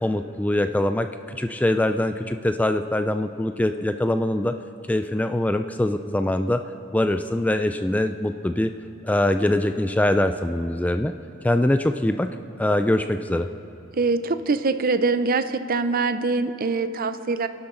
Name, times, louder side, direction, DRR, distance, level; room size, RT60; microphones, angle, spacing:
voice 1, 0.0-4.5 4.9-6.6 6.9-8.7 9.0-11.1 11.4-12.3 12.6-13.5, left 1 dB, 5° left, 8 dB, 0.3 m, -23 dB
voice 2, 13.9-17.5, right 3 dB, 45° right, 11 dB, 0.6 m, -23 dB
29.0 x 11.5 x 3.8 m, 2.8 s
head